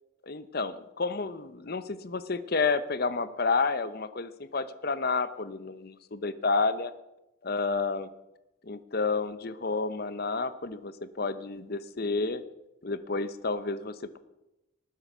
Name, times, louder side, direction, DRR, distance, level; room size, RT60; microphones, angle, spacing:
voice 1, 0.2-6.9 7.4-8.1 8.7-12.4 12.8-14.2, left 4 dB, 50° left, 13 dB, 0.8 m, -30 dB
19.5 x 9.6 x 6.1 m, 0.95 s
head